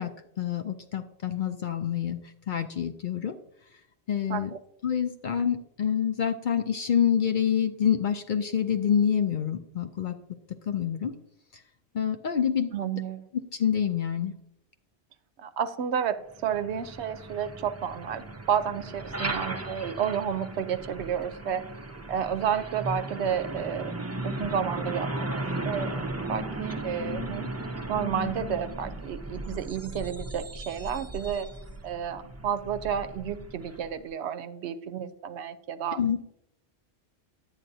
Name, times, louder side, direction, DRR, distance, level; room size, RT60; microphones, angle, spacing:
voice 1, 0.0-2.2 2.5-3.4 4.1-4.5 4.8-10.2 10.7-11.1 11.9-12.7 13.5-14.3 36.0-36.2, left 8 dB, 60° left, 8 dB, 0.5 m, -27 dB
voice 2, 12.7-13.3 15.4-21.7 22.1-24.0 24.2-26.0 26.3-27.5 27.9-31.5 31.8-36.2, right 8 dB, 75° right, 12 dB, 0.8 m, -31 dB
Truck, 16.3-34.0, right 2 dB, 20° right, 0.5 m, -36 dB
10.5 x 8.8 x 2.7 m, 0.79 s
omnidirectional pair, 1.2 m